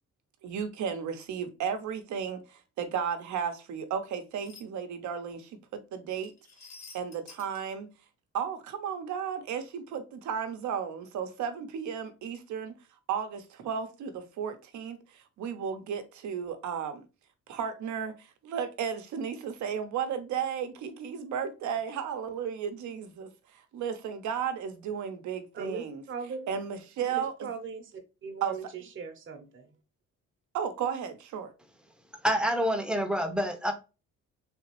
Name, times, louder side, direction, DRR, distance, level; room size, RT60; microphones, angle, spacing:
voice 1, 0.4-2.4 2.8-6.3 6.9-7.9 8.3-12.7 13.1-15.0 15.4-17.0 17.5-18.1 18.4-23.3 23.7-26.0 26.5-27.3 28.4-28.5 30.5-31.5, right 7 dB, 70° right, 0.7 m, -34 dB
sound 1, 4.4-4.6 6.2-7.6, left 4 dB, 65° left, 1.1 m, -49 dB
voice 2, 25.5-26.6 27.1-29.7, right 5 dB, 40° right, 0.8 m, -40 dB
voice 3, 32.2-33.7, equal, 5° right, 0.7 m, -27 dB
3.4 x 2.9 x 2.9 m
cardioid pair, 90°, 30 cm